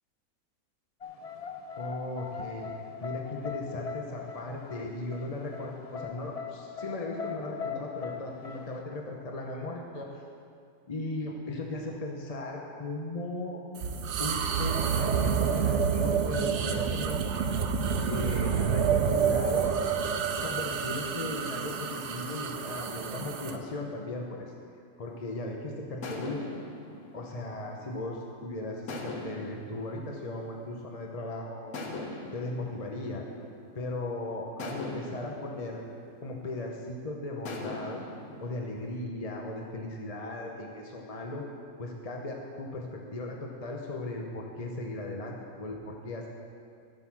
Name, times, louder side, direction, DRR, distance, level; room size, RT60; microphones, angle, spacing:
sound 1, 1.0-8.8, left 7 dB, 75° left, 0.3 m, -40 dB
voice 1, 1.8-10.2 10.9-13.6 14.2-17.2 18.1-19.7 20.4-24.5 25.0-26.4 27.1-31.8 32.3-33.3 33.7-35.8 36.2-38.0 38.4-41.5 41.8-46.3, left 2 dB, 30° left, 0 dB, 0.9 m, -37 dB
sound 2, 13.8-23.6, right 6 dB, 60° right, 0.9 m, -28 dB
sound 3, 25.1-25.4 26.0-28.3 28.9-31.1 31.7-33.9 34.6-36.8 37.4-39.0, left 2 dB, 90° left, 1.5 m, -42 dB
11.5 x 7.8 x 6.1 m, 2.3 s
omnidirectional pair, 1.5 m